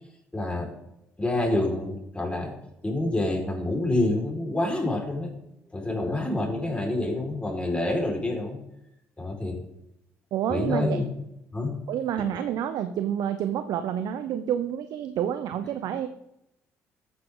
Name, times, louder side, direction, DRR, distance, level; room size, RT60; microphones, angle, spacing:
voice 1, 0.3-0.7 1.2-2.5 2.8-5.3 5.7-8.6 9.2-9.6 10.5-11.0 11.5-11.7, left 2 dB, 15° left, -1 dB, 4.9 m, -27 dB
voice 2, 10.3-11.0 11.9-16.1, right 10 dB, 65° right, 10 dB, 0.8 m, -28 dB
13.5 x 9.8 x 3.9 m, 0.84 s
hypercardioid pair, 50°, 7 cm